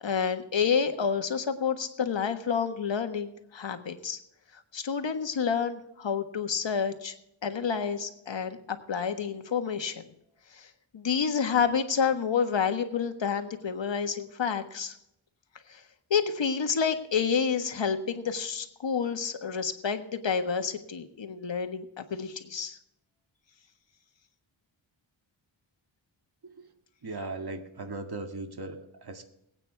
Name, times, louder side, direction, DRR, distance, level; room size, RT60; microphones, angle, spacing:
voice 1, 0.0-4.2 4.7-7.1 7.4-10.1 10.5-10.7 10.9-14.9 15.7-15.8 16.1-22.8, left 6 dB, 65° left, 7 dB, 1.6 m, -29 dB
voice 2, 27.0-29.2, right 3 dB, 50° right, 5 dB, 2.0 m, -38 dB
22.0 x 9.0 x 3.4 m, 0.80 s
cardioid pair, 65°, 47 cm